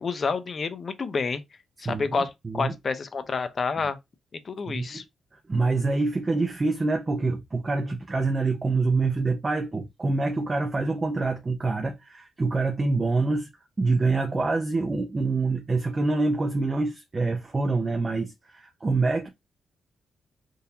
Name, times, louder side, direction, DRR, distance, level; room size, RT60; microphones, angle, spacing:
voice 1, 0.0-1.4 1.8-4.0 4.4-5.0, left 4 dB, 45° left, 0.6 m, -29 dB
voice 2, 1.8-2.7 3.8-3.9 4.7-5.0 5.3-13.5 13.8-19.3, right 3 dB, 30° right, 0.6 m, -26 dB
3.8 x 2.6 x 2.8 m
cardioid pair, 75°, 0 cm